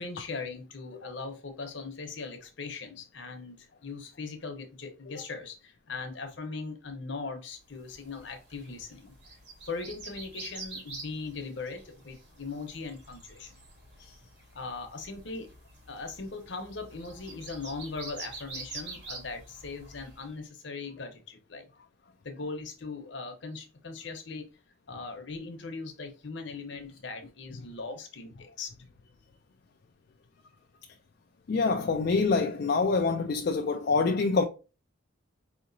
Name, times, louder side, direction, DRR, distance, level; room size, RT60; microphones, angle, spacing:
voice 1, 0.0-9.1 9.7-13.5 14.5-15.5 15.9-21.7 22.2-24.5 24.9-28.7, left 4 dB, 65° left, 0.9 m, -39 dB
sound 1, 7.8-20.3, right 3 dB, 55° right, 1.5 m, -46 dB
voice 2, 31.5-34.4, left 4 dB, 50° left, 0.3 m, -26 dB
4.8 x 2.9 x 2.6 m
head